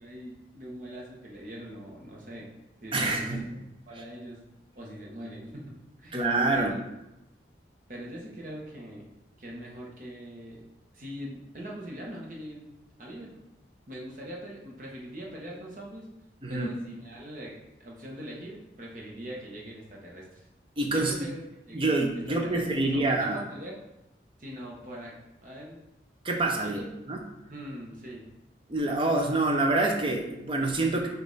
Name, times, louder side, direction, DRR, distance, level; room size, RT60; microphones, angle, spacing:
voice 1, 0.0-2.5 2.8-3.5 3.9-4.4 4.7-6.8 7.9-9.0 9.4-10.6 10.9-12.7 13.0-13.4 13.9-16.1 16.5-20.5 20.9-21.4 21.7-21.8 22.3-23.8 24.4-25.2 25.4-25.8 26.6-26.9 27.5-28.2, equal, 45° right, -2 dB, 1.0 m, -42 dB
voice 2, 2.9-3.4 6.1-6.8 16.4-16.7 20.8-21.1 21.7-23.4 26.2-26.8 27.1-27.2 28.7-31.1, right 2 dB, 30° right, 2 dB, 0.6 m, -26 dB
5.2 x 2.6 x 3.9 m, 0.92 s
head